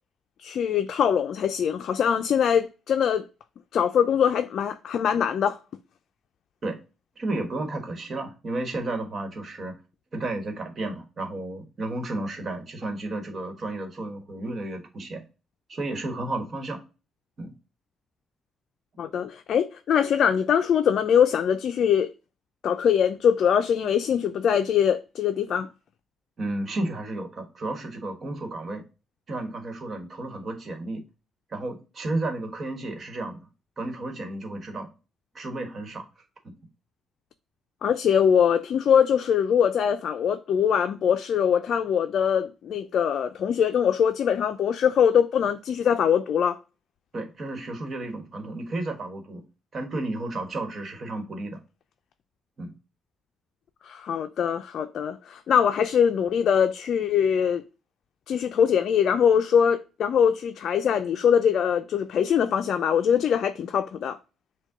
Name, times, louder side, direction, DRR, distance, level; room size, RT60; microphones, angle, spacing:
voice 1, 0.4-3.2 3.7-5.6 19.0-22.1 22.6-25.7 37.8-46.6 53.9-57.6 58.3-64.2, left 8 dB, 65° left, 0.4 m, -22 dB
voice 2, 7.2-9.7 10.1-15.2 15.7-16.8 17.4-17.5 26.4-28.8 29.3-31.0 31.5-33.5 33.8-34.9 35.3-36.0 36.4-36.5 47.1-49.4 49.7-51.6 52.6-52.7, right 2 dB, 45° right, 1.3 m, -32 dB
6.3 x 2.2 x 3.6 m
cardioid pair, 90°, 0 cm